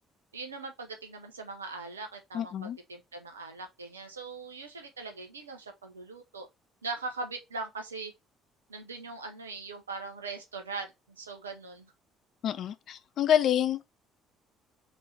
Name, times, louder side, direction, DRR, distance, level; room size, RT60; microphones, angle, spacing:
voice 1, 0.3-6.5 6.8-8.1 8.7-11.9, right 3 dB, 90° right, 0.9 m, -40 dB
voice 2, 2.3-2.8 12.4-13.9, left 10 dB, 55° left, 0.5 m, -27 dB
3.8 x 3.7 x 3.2 m
hypercardioid pair, 55°, 0 cm